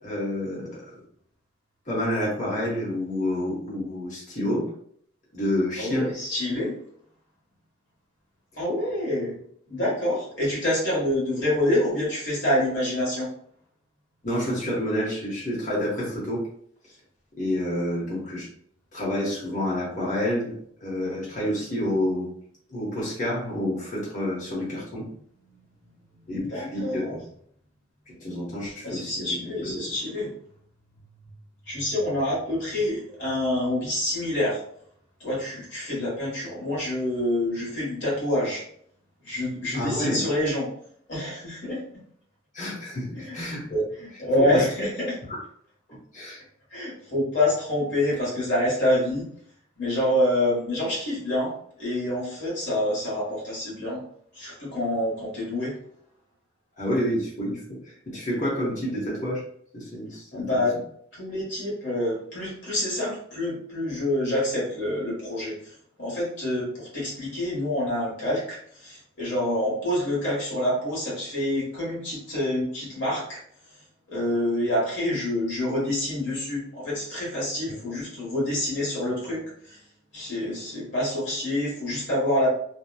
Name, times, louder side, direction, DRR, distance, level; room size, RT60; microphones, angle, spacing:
voice 1, 0.0-0.9 1.9-4.7 5.3-6.1 14.2-16.4 17.4-18.5 18.9-20.5 20.8-22.3 22.7-25.1 26.3-27.2 28.1-29.3 29.6-29.9 39.7-40.2 42.5-43.8 44.1-44.6 46.1-46.4 56.8-59.4 59.7-60.6, left 1 dB, 40° left, -6 dB, 1.0 m, -28 dB
voice 2, 5.8-6.8 8.6-9.4 9.7-13.3 26.1-27.2 28.8-30.3 31.7-34.6 35.2-38.6 39.2-40.7 41.1-41.8 43.2-43.4 44.2-45.2 46.7-49.3 49.8-51.5 51.8-54.0 54.3-55.8 60.3-60.7 61.1-65.7 66.0-73.4 74.1-79.8 80.1-82.5, left 1 dB, 65° left, -6 dB, 1.3 m, -27 dB
2.8 x 2.2 x 2.2 m, 0.65 s
head